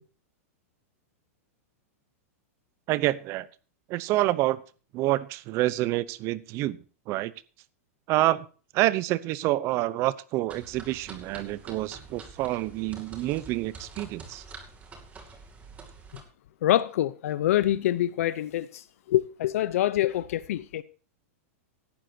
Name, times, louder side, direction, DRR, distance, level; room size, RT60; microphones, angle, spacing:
voice 1, 2.9-3.5 3.9-4.6 4.9-7.3 8.1-8.5 8.7-14.4, right 16 dB, 35° right, 0.7 m, -27 dB
sound 1, 10.5-16.2, right 4 dB, 20° right, 2.5 m, -46 dB
voice 2, 16.6-18.8 19.1-20.8, left 13 dB, 70° left, 0.7 m, -25 dB
17.0 x 11.5 x 2.8 m
supercardioid pair, 145°, 8 cm